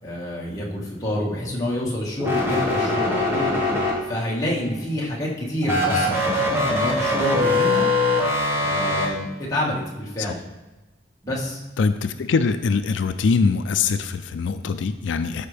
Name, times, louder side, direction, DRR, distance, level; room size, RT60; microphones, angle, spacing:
voice 1, 0.0-3.5 4.1-7.9 8.6-10.4 11.2-11.6, left 1 dB, 20° left, -5 dB, 1.7 m, -27 dB
sound 1, 2.2-4.4 5.6-9.1, left 2 dB, 15° right, 1.5 m, -22 dB
voice 2, 11.8-15.5, left 4 dB, 85° left, 10 dB, 0.4 m, -23 dB
13.0 x 5.1 x 3.4 m, 1.1 s
head